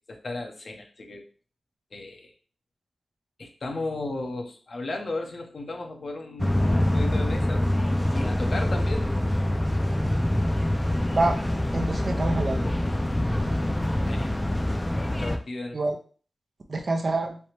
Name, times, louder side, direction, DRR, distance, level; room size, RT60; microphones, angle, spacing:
voice 1, 0.1-1.2 1.9-2.3 3.4-7.7 8.1-9.2 14.1-14.3 15.2-15.8, left 2 dB, 60° left, 3 dB, 0.8 m, -35 dB
sound 1, 6.4-15.4, left 1 dB, 20° left, 0.5 m, -25 dB
voice 2, 11.7-12.7 15.7-16.0 16.7-17.4, right 2 dB, 55° right, 3 dB, 0.7 m, -26 dB
3.3 x 3.0 x 2.9 m, 0.41 s
cardioid pair, 50°, 0 cm